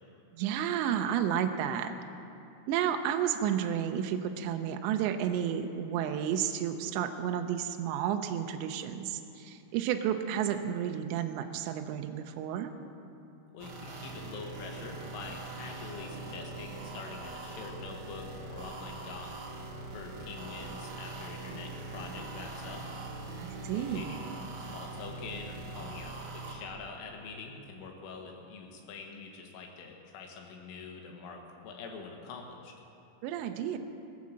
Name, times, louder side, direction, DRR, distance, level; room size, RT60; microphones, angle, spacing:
voice 1, 0.3-1.9 2.7-12.7 23.4-24.1 33.2-33.8, right 9 dB, 80° right, 6 dB, 2.6 m, -31 dB
voice 2, 13.5-19.4 19.9-22.9 23.7-32.8, left 4 dB, 75° left, 1 dB, 3.9 m, -45 dB
sound 1, 13.6-26.6, right 3 dB, 55° right, 3.3 m, -42 dB
18.5 x 8.6 x 7.5 m, 2.7 s
omnidirectional pair, 5.9 m